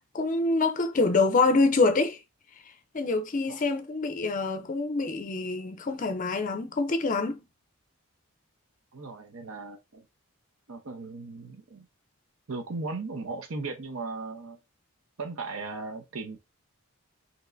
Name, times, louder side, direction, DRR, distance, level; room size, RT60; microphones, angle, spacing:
voice 1, 0.1-2.2 2.9-7.4, left 3 dB, 35° left, 0.4 m, -25 dB
voice 2, 8.9-10.0 10.7-11.9 12.5-14.6 15.2-16.4, right 3 dB, 70° right, 0.8 m, -37 dB
5.3 x 2.9 x 2.5 m
head